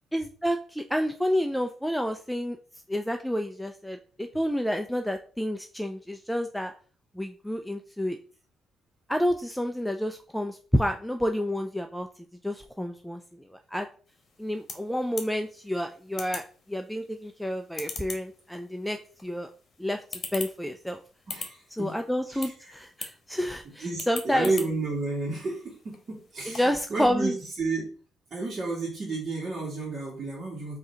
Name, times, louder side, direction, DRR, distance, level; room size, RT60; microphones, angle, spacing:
voice 1, 0.1-2.6 2.9-6.7 7.1-8.2 9.1-12.1 12.4-13.9 14.4-19.5 19.8-21.0 21.8-24.5 26.5-27.3, equal, ahead, 6 dB, 0.3 m, -29 dB
sound 1, 14.1-26.9, left 4 dB, 45° left, 1.0 m, -44 dB
voice 2, 21.3-21.9 22.3-22.5 23.8-27.9 28.3-30.8, right 3 dB, 45° right, -5 dB, 1.6 m, -31 dB
3.6 x 2.8 x 4.3 m, 0.41 s
cardioid pair, 90°, 0 cm